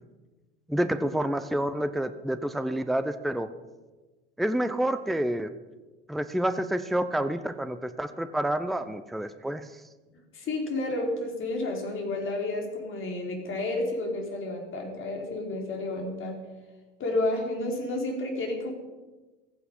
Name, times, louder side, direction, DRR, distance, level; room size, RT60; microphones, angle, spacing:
voice 1, 0.7-3.5 4.4-5.5 6.1-9.7, right 1 dB, ahead, 11 dB, 0.7 m, -28 dB
voice 2, 10.3-16.4 17.0-18.7, left 2 dB, 35° left, 1 dB, 4.5 m, -31 dB
15.5 x 15.0 x 5.6 m, 1.2 s
figure-of-eight pair, 70°, 35 cm